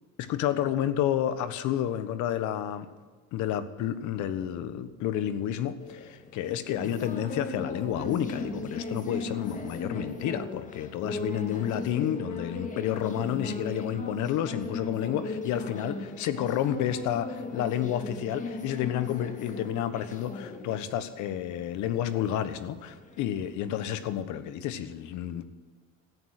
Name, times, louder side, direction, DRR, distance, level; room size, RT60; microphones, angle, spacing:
voice 1, 0.2-2.9 3.3-25.4, left 10 dB, 70° left, 12 dB, 1.3 m, -30 dB
sound 1, 5.8-24.2, left 3 dB, 25° left, 1.7 m, -38 dB
14.0 x 8.7 x 9.9 m, 1.4 s
cardioid pair, 130°, 31 cm